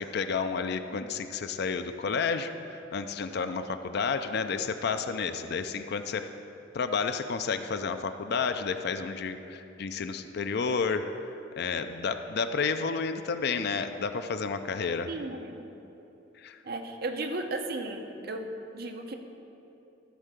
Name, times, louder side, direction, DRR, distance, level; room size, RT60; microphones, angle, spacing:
voice 1, 0.0-6.3 6.7-11.1 11.6-15.1 16.4-16.6, left 5 dB, 55° left, 9 dB, 0.5 m, -31 dB
voice 2, 15.1-15.6 16.6-19.1, right 2 dB, 55° right, 4 dB, 0.8 m, -35 dB
13.5 x 4.6 x 6.6 m, 2.9 s
head